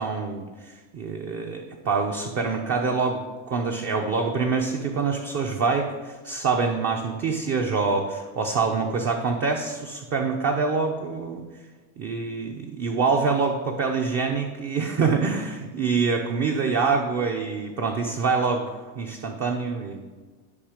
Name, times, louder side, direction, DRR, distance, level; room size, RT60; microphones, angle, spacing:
voice 1, 0.0-3.2 3.5-11.4 12.0-20.0, right 4 dB, 30° right, 2 dB, 0.7 m, -25 dB
12.0 x 5.5 x 5.1 m, 1.3 s
cardioid pair, 155°, 47 cm